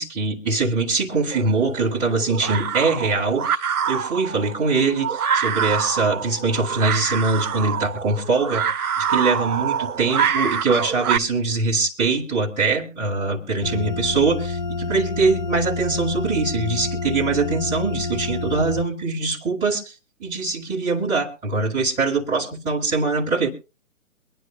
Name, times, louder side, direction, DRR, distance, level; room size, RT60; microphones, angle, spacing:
voice 1, 0.0-3.6 3.9-8.7 9.0-19.9 20.2-23.5, right 3 dB, 10° right, -8 dB, 1.8 m, -23 dB
sound 1, 1.3-11.2, right 7 dB, 85° right, 0.7 m, -26 dB
sound 2, 13.6-18.8, left 4 dB, 35° left, 0.6 m, -28 dB
24.0 x 10.5 x 2.3 m, 0.31 s
figure-of-eight pair, 150°, 43 cm